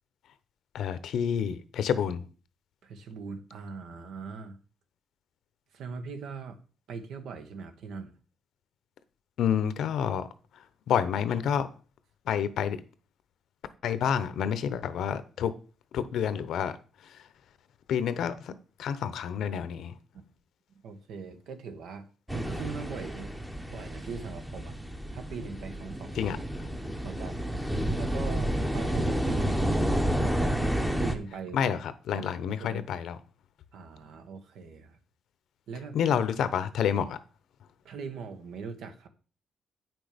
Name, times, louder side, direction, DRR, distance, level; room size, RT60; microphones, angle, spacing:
voice 1, 0.7-2.2 9.4-10.3 10.9-11.7 12.3-12.8 13.8-15.5 15.9-16.7 17.9-18.5 18.8-19.9 26.2-26.4 31.5-33.2 35.9-37.2, left 8 dB, 70° left, 0.8 m, -28 dB
voice 2, 2.8-4.6 5.7-6.6 6.9-8.1 20.8-22.1 22.3-23.3 23.7-24.8 25.1-26.3 27.0-27.5 28.0-30.6 31.0-31.6 32.1-32.8 33.7-35.0 35.7-36.2 37.8-39.1, right 5 dB, 75° right, 1.4 m, -41 dB
sound 1, 22.3-31.2, equal, 5° right, 0.9 m, -30 dB
8.9 x 6.2 x 5.1 m
cardioid pair, 150°, 0 cm